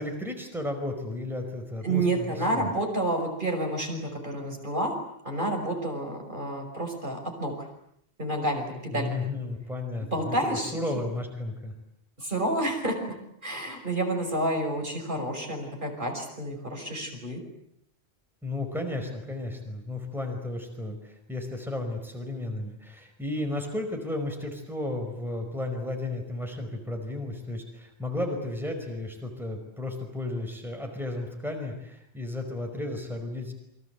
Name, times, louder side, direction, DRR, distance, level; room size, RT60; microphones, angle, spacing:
voice 1, 0.0-2.7 8.9-10.4 10.7-11.7 18.4-33.5, left 2 dB, ahead, 3 dB, 5.0 m, -33 dB
voice 2, 1.8-4.9 5.2-7.7 8.2-9.3 10.1-10.8 12.2-13.1 13.4-17.4, right 1 dB, 50° right, 3 dB, 6.0 m, -29 dB
29.0 x 24.0 x 8.4 m, 0.74 s
omnidirectional pair, 1.1 m